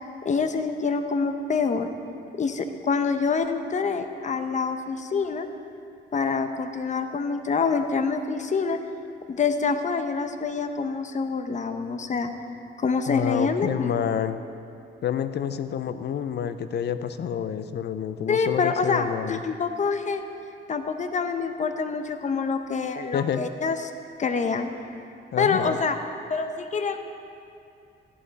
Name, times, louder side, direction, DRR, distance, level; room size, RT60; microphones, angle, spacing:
voice 1, 0.2-1.9 2.4-5.5 6.1-8.8 9.3-12.3 12.8-14.0 18.3-20.2 20.7-23.8 24.2-24.7 25.4-26.0 26.3-27.0, left 5 dB, 35° left, 8 dB, 0.9 m, -26 dB
voice 2, 13.1-14.4 15.0-19.4 23.1-23.5 25.3-25.8, left 8 dB, 55° left, 11 dB, 0.6 m, -28 dB
15.0 x 11.0 x 4.1 m, 2.5 s
cardioid pair, 90°, 20 cm